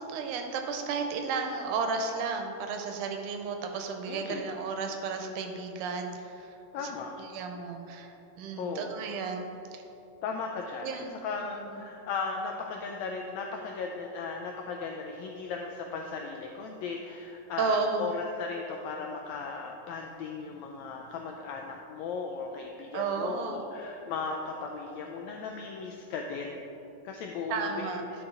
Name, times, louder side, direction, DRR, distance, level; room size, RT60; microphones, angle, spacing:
voice 1, 0.0-6.6 6.8-6.9 7.2-9.8 10.8-11.8 17.6-18.1 22.9-23.6 27.5-28.0, right 4 dB, 80° right, 4 dB, 2.0 m, -33 dB
voice 2, 4.1-4.5 6.7-7.2 8.6-9.0 10.2-26.6 27.0-27.8, left 4 dB, 85° left, 1 dB, 1.6 m, -37 dB
10.0 x 4.5 x 3.7 m, 2.9 s
omnidirectional pair, 3.7 m